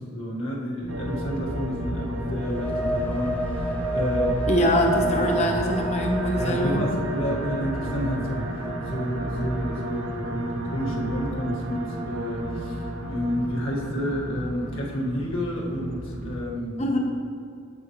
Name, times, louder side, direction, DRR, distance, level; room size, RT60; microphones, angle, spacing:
voice 1, 0.0-4.5 6.3-16.8, equal, 85° left, -4 dB, 1.7 m, -30 dB
sound 1, 0.8-16.5, right 1 dB, 35° right, 0.7 m, -34 dB
sound 2, 0.9-14.9, right 2 dB, 80° right, 0.9 m, -36 dB
sound 3, 2.3-9.9, right 1 dB, 10° left, 0.4 m, -31 dB
voice 2, 4.5-6.9 16.8-17.0, equal, 35° left, 1 dB, 0.9 m, -23 dB
8.2 x 7.8 x 3.1 m, 2.4 s
head